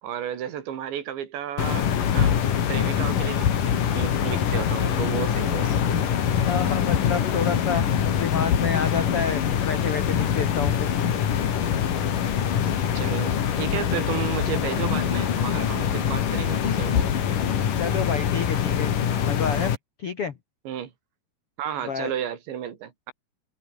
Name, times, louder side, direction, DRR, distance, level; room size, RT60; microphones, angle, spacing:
voice 1, 0.0-2.3 2.7-6.1 12.9-17.1 20.7-20.9 21.6-23.1, right 9 dB, 75° right, 4.9 m, -33 dB
sound 1, 1.6-19.8, left 8 dB, 50° left, 3.6 m, -24 dB
voice 2, 6.1-10.9 17.8-18.9 19.2-20.3 21.9-22.1, left 6 dB, 75° left, 1.3 m, -29 dB
omnidirectional pair, 5.3 m